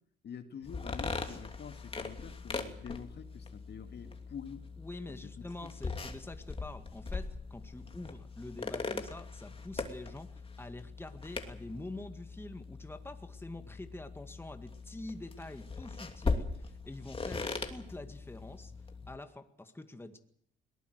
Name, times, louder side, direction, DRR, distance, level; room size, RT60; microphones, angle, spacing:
voice 1, 0.2-4.7 5.4-5.7, left 7 dB, 55° left, 7 dB, 2.3 m, -47 dB
sound 1, 0.6-19.2, left 3 dB, 30° left, 2.8 m, -40 dB
voice 2, 4.8-18.7 19.1-20.2, left 2 dB, 10° left, 8 dB, 2.0 m, -46 dB
22.5 x 18.5 x 8.0 m, 0.63 s
cardioid pair, 90°, 20 cm